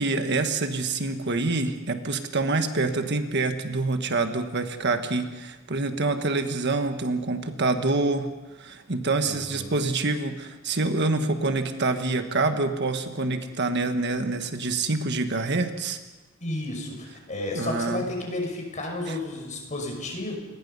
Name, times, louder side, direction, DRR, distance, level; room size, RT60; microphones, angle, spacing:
voice 1, 0.0-16.0 17.5-18.0 19.1-19.2, right 3 dB, 55° right, 7 dB, 1.5 m, -26 dB
voice 2, 9.3-9.9 16.4-20.4, left 1 dB, 35° left, 2 dB, 5.9 m, -32 dB
27.5 x 21.5 x 5.6 m, 1.2 s
head